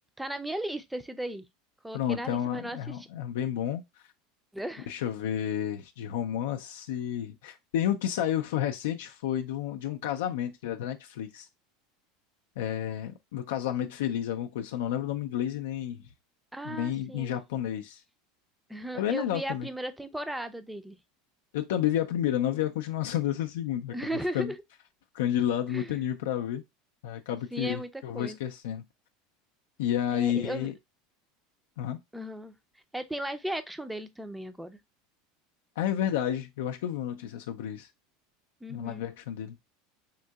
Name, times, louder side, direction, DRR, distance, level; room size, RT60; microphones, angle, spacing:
voice 1, 0.2-1.5 1.8-3.1 4.5-4.9 16.5-17.4 18.7-21.0 23.9-24.6 25.7-26.0 27.5-28.4 30.1-30.7 32.1-32.5 32.9-34.8 38.6-39.0, right 1 dB, 5° right, 0.4 m, -36 dB
voice 2, 1.9-3.8 4.9-11.5 12.6-16.0 16.6-18.0 18.9-19.7 21.5-23.9 24.3-24.5 25.1-26.6 27.0-28.8 29.8-30.7 31.8-32.0 35.8-37.9 38.7-39.6, left 10 dB, 90° left, 0.4 m, -31 dB
3.7 x 2.7 x 2.2 m
supercardioid pair, 135°, 0 cm